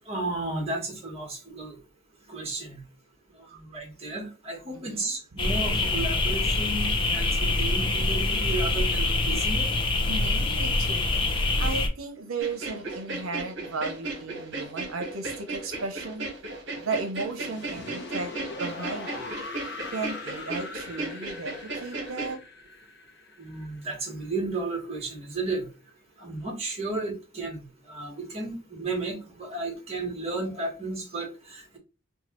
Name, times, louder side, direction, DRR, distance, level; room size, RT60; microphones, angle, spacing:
voice 1, 0.1-1.8 2.3-2.8 3.7-9.7 23.4-25.6 26.2-31.8, right 2 dB, 30° right, 1.5 m, -33 dB
voice 2, 4.7-5.1 10.1-11.0 11.6-16.3 16.8-19.3 19.9-22.4, right 3 dB, 85° right, 0.7 m, -35 dB
sound 1, 5.4-11.9, left 2 dB, 25° left, 0.6 m, -25 dB
sound 2, 12.4-22.3, right 2 dB, 60° right, 1.3 m, -35 dB
sound 3, 17.3-24.2, left 3 dB, 55° left, 0.8 m, -41 dB
4.5 x 2.3 x 3.0 m
head